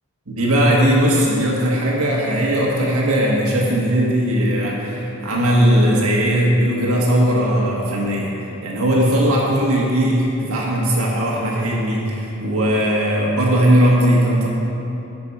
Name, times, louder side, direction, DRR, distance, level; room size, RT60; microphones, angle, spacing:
voice 1, 0.3-14.5, equal, 70° right, -3 dB, 1.6 m, -18 dB
14.5 x 5.8 x 4.8 m, 2.9 s
head